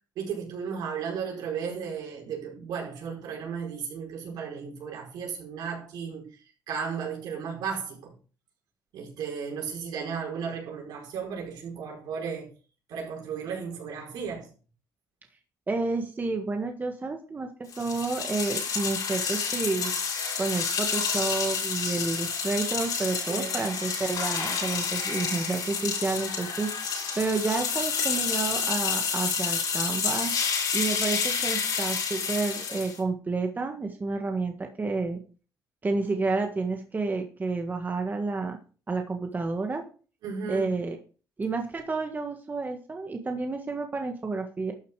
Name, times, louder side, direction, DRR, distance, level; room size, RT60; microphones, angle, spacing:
voice 1, 0.1-6.3 6.7-8.1 8.9-12.5 12.9-14.5 23.3-23.7 40.2-40.7, right 6 dB, 80° right, 5.0 m, -34 dB
voice 2, 15.7-19.9 20.4-30.3 30.7-35.2 35.8-38.6 38.9-39.8 40.5-41.0 41.4-44.7, right 3 dB, 25° right, 1.5 m, -30 dB
sound 1, 17.7-33.0, left 6 dB, 70° left, 6.3 m, -29 dB
12.5 x 6.5 x 4.8 m
cardioid pair, 95°, 7 cm